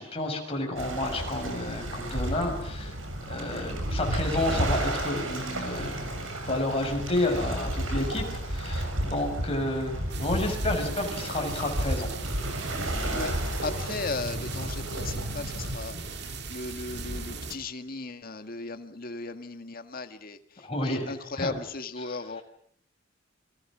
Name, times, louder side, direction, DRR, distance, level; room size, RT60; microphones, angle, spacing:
voice 1, 0.0-2.9 3.3-12.1 20.6-21.1 21.4-21.5 22.0-22.2, left 1 dB, 30° left, 2 dB, 6.4 m, -30 dB
Waves surf, 0.8-15.7, right 1 dB, 80° right, 7.0 m, -32 dB
sound 1, 10.1-17.5, right 3 dB, 55° right, 2.5 m, -39 dB
voice 2, 13.6-16.0 16.5-20.4 20.8-22.4, left 3 dB, 45° left, 8 dB, 2.0 m, -36 dB
30.0 x 24.5 x 6.3 m, 0.67 s
head